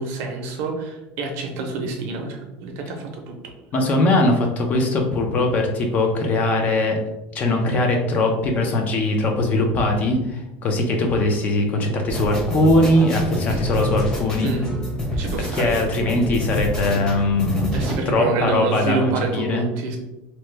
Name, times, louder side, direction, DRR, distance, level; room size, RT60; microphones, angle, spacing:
voice 1, 0.0-3.6 13.5-13.7 14.4-14.7 15.2-16.0 17.7-20.0, right 3 dB, 65° right, 3 dB, 0.6 m, -28 dB
voice 2, 3.7-7.0 7.3-14.5 15.5-17.8 18.1-19.6, left 2 dB, 35° left, 3 dB, 0.5 m, -21 dB
sound 1, 12.1-18.0, equal, 20° left, 0.9 m, -27 dB
2.9 x 2.1 x 3.2 m, 0.94 s
cardioid pair, 155°, 5 cm